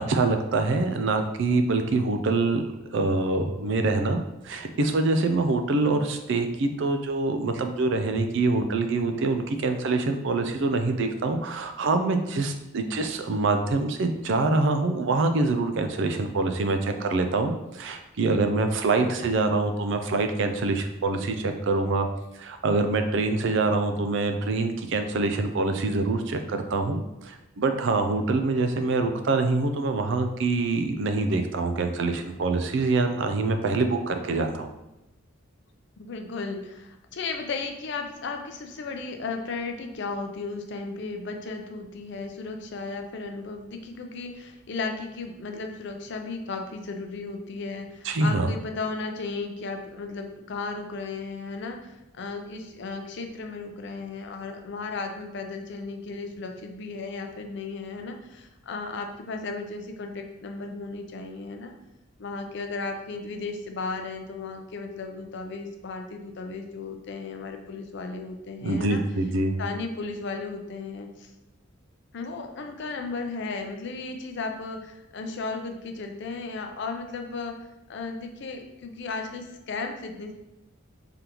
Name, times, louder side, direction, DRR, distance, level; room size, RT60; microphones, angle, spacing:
voice 1, 0.1-2.6 2.9-22.1 22.4-34.7 48.0-48.5 68.6-69.6, right 3 dB, 60° right, 6 dB, 0.4 m, -25 dB
voice 2, 36.0-61.7 62.2-69.0 69.6-71.3 72.1-77.6 77.9-80.3, left 3 dB, 60° left, 5 dB, 0.5 m, -35 dB
3.8 x 3.4 x 2.9 m, 0.94 s
head